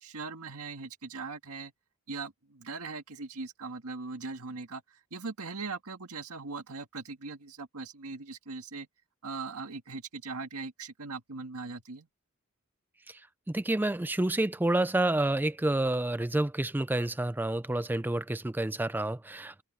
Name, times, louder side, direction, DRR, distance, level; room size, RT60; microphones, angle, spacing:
voice 1, 0.0-1.7 2.1-4.8 5.1-8.9 9.2-12.1, right 4 dB, 80° right, 1.9 m, -40 dB
voice 2, 13.5-19.6, right 1 dB, 10° right, 0.4 m, -29 dB
open air
head